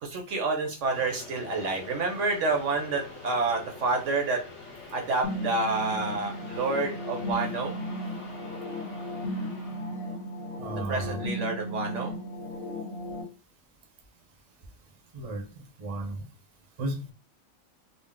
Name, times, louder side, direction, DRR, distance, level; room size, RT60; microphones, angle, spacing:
voice 1, 0.0-4.4 4.9-7.8 10.9-12.1, right 3 dB, 65° right, 2 dB, 1.0 m, -29 dB
sound 1, 0.8-11.1, left 3 dB, 55° left, 1.3 m, -46 dB
sound 2, 5.2-13.2, left 1 dB, 80° left, 1.5 m, -35 dB
voice 2, 10.6-11.2 15.1-16.2 16.8-17.1, right 2 dB, 30° right, 3 dB, 0.7 m, -34 dB
3.8 x 2.0 x 3.6 m, 0.34 s
omnidirectional pair, 1.4 m